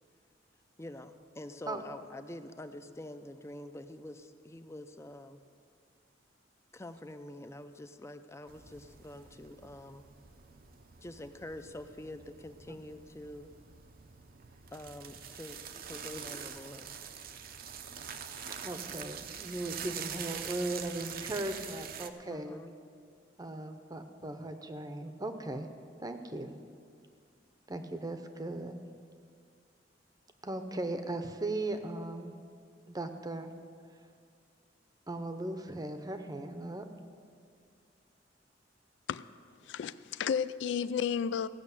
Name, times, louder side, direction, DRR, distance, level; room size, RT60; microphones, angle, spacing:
voice 1, 0.8-5.4 6.7-10.1 11.0-13.5 14.7-17.1 20.1-20.6 22.2-22.9, left 1 dB, 15° left, 0.5 m, -46 dB
sound 1, 8.5-22.1, right 7 dB, 55° right, 0.7 m, -45 dB
voice 2, 18.6-22.6 23.4-25.7 26.0-26.5 27.7-28.8 30.4-32.3 32.9-33.5 35.1-36.8, right 2 dB, 20° right, 0.7 m, -38 dB
voice 3, 39.6-41.5, left 7 dB, 70° left, 0.3 m, -32 dB
15.5 x 6.3 x 8.3 m
head